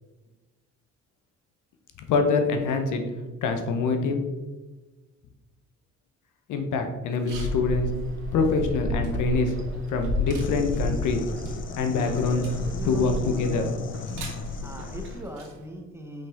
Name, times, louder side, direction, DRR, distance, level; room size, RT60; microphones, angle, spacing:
voice 1, 2.1-3.0 3.4-4.2 6.5-7.9 8.3-9.5 9.9-11.2 11.8-12.4 12.9-13.6, left 4 dB, 80° left, 5 dB, 0.9 m, -25 dB
sound 1, 7.1-15.7, right 4 dB, 85° right, 1.8 m, -49 dB
sound 2, 7.3-15.3, left 1 dB, 40° right, 1.3 m, -32 dB
sound 3, 10.4-15.2, left 7 dB, 40° left, 0.5 m, -38 dB
voice 2, 12.1-13.8 14.6-16.3, equal, 10° right, 2 dB, 1.0 m, -40 dB
5.4 x 5.4 x 3.5 m, 1.2 s
cardioid pair, 90°, 30 cm